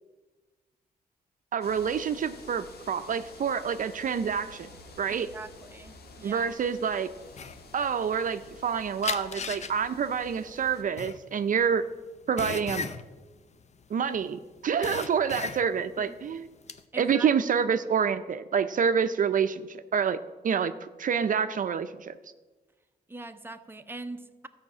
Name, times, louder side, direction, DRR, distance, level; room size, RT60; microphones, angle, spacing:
voice 1, 1.5-4.7 5.0-5.3 6.2-7.1 7.7-11.8 12.3-12.9 13.9-16.5 17.0-20.2 20.4-22.1, right 7 dB, 55° right, 10 dB, 0.5 m, -27 dB
sound 1, 1.6-10.8, left 3 dB, 80° left, 1.5 m, -50 dB
voice 2, 5.1-6.5 16.1-16.2 16.9-17.3 23.1-24.5, right 2 dB, 15° right, 7 dB, 0.7 m, -42 dB
sound 2, 7.3-8.7 9.0-14.3 14.6-15.9 16.3-16.8, left 5 dB, 45° left, 0.7 m, -36 dB
13.0 x 5.7 x 8.6 m, 1.3 s
cardioid pair, 105°, 16 cm